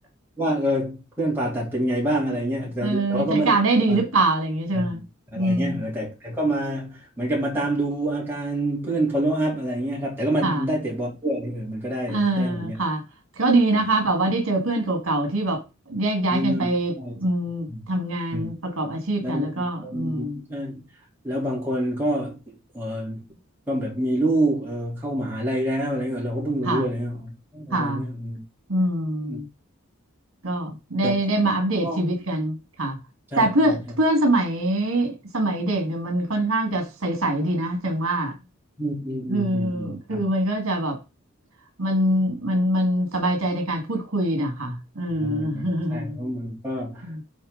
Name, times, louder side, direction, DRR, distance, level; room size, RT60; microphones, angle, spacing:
voice 1, 0.4-3.5 3.9-4.1 4.7-5.0 5.3-12.8 13.8-13.9 16.3-16.7 17.0-17.1 17.7-17.9 18.3-18.5 19.2-20.8 21.2-23.2 23.7-28.4 29.2-29.4 31.0-31.1 31.8-32.0 33.3-33.8 38.8-40.2 45.2-47.1, right 1 dB, 10° right, 3.3 m, -27 dB
voice 2, 2.8-5.0 5.4-5.8 10.4-10.6 12.1-13.0 13.4-15.6 15.9-16.9 17.2-20.4 26.6-26.9 27.7-28.0 28.7-29.5 30.4-33.0 33.4-38.3 39.3-41.0 41.8-46.2 47.0-47.2, right 1 dB, 65° right, 1.9 m, -24 dB
8.6 x 4.6 x 3.9 m
head